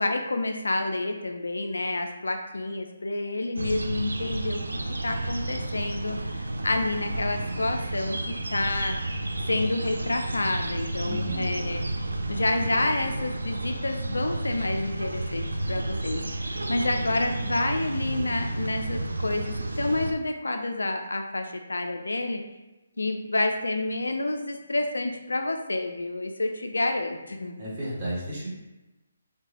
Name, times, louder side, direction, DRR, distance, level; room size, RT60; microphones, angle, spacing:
voice 1, 0.0-9.0 9.5-11.8 12.3-22.4 23.0-27.5, left 2 dB, 70° left, 4 dB, 0.3 m, -29 dB
sound 1, 3.5-20.1, right 2 dB, 70° right, 0.3 m, -31 dB
voice 2, 11.0-11.4 27.6-28.5, equal, 35° right, -7 dB, 1.2 m, -32 dB
3.1 x 2.2 x 3.4 m, 1.0 s
figure-of-eight pair, 145°, 0 cm